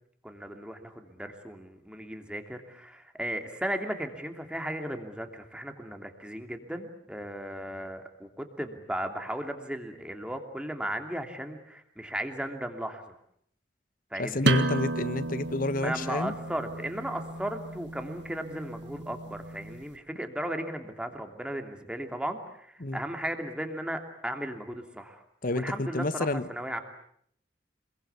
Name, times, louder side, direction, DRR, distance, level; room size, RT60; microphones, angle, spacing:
voice 1, 0.2-13.2 14.1-14.6 15.8-25.2 25.5-26.8, right 1 dB, 5° right, 5 dB, 2.9 m, -36 dB
voice 2, 14.2-16.3 22.8-23.0 25.4-26.4, left 2 dB, 50° left, 14 dB, 1.2 m, -30 dB
sound 1, 14.4-19.8, right 2 dB, 70° right, 1.8 m, -32 dB
27.0 x 22.5 x 8.4 m, 0.67 s
head